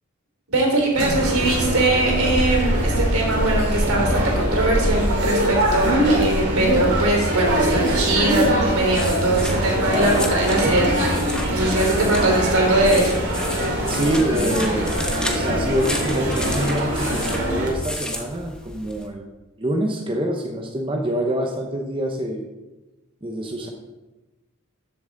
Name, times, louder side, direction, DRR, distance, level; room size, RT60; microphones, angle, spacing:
voice 1, 0.5-13.2, right 2 dB, 80° right, 0 dB, 3.3 m, -21 dB
sound 1, 0.9-17.7, equal, 50° right, 2.8 m, -22 dB
sound 2, 8.1-19.1, left 1 dB, 5° left, 0.9 m, -33 dB
voice 2, 13.9-14.9 15.2-19.3 19.6-22.5 23.2-23.7, right 1 dB, 25° right, 2 dB, 0.8 m, -26 dB
14.0 x 6.9 x 3.9 m, 1.1 s
head